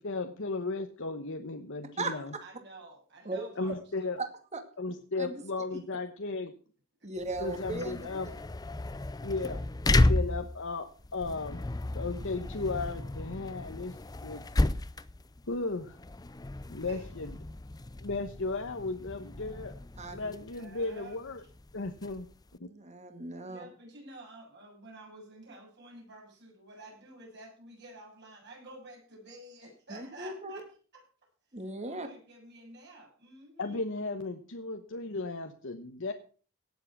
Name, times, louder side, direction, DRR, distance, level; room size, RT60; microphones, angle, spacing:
voice 1, 0.0-2.3 3.6-4.2 4.8-6.5 7.4-8.3 9.2-9.6 9.9-11.6 11.9-14.4 15.5-16.0 16.7-17.3 18.0-19.7 20.1-21.4 21.7-22.3 22.6-22.7 33.6-36.1, left 3 dB, 65° left, 6 dB, 1.1 m, -35 dB
voice 2, 2.1-3.7 4.0-4.2 5.4-5.5 5.9-6.0 7.0-7.1 16.7-17.1 20.3-21.2 22.0-22.2 23.5-30.6 30.9-31.0 31.5-31.6 31.8-33.9, right 2 dB, 55° right, 0 dB, 7.6 m, -50 dB
voice 3, 3.2-3.8 4.2-4.6 5.2-5.3 5.7-5.8 7.0-8.1 20.0-20.3 22.6-23.6 29.9-30.6 31.5-32.1, right 2 dB, 35° right, 7 dB, 2.2 m, -37 dB
sound 1, 7.2-22.5, left 2 dB, 20° left, 0.6 m, -33 dB
17.5 x 7.6 x 6.0 m, 0.41 s
head